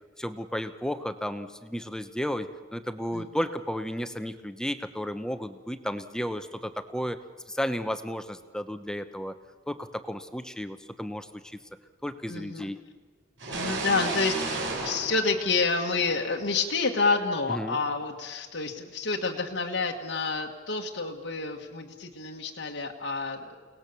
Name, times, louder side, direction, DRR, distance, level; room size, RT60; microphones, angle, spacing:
voice 1, 0.2-7.2 7.5-9.3 9.7-11.6 12.0-12.8 17.5-17.8, equal, 5° left, 10 dB, 0.8 m, -33 dB
voice 2, 12.3-12.7 13.5-23.5, left 4 dB, 75° left, 0 dB, 1.5 m, -29 dB
sound 1, 13.4-16.2, right 2 dB, 75° right, 4.7 m, -33 dB
29.5 x 19.0 x 6.9 m, 1.4 s
head